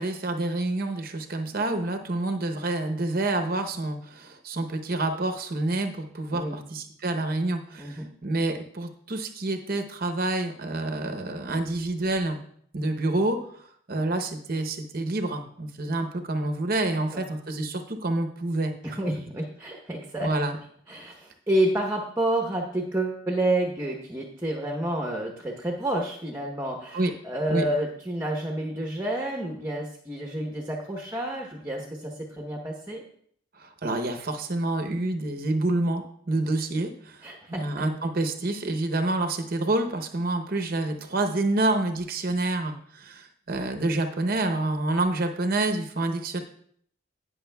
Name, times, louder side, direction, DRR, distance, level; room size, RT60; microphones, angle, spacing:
voice 1, 0.0-12.4 12.7-19.0 20.2-20.5 26.9-27.1 27.5-27.6 33.5-37.3 37.6-46.4, right 2 dB, 45° right, 6 dB, 0.8 m, -28 dB
voice 2, 7.8-8.1 17.1-17.2 18.8-20.3 20.9-33.0 37.2-37.6, right 1 dB, 10° right, 1 dB, 0.9 m, -29 dB
18.0 x 6.2 x 2.3 m, 0.64 s
head